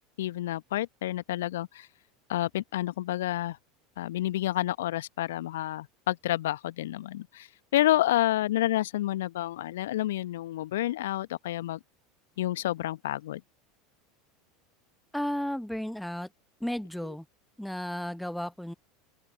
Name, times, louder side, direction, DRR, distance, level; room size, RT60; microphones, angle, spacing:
voice 1, 0.2-1.9 2.3-3.6 4.0-11.8 12.4-13.4, left 14 dB, 65° left, 1.1 m, -29 dB
voice 2, 15.1-16.3 16.6-17.2 17.6-18.7, equal, ahead, 1.0 m, -33 dB
open air
figure-of-eight pair, 75°, 0 cm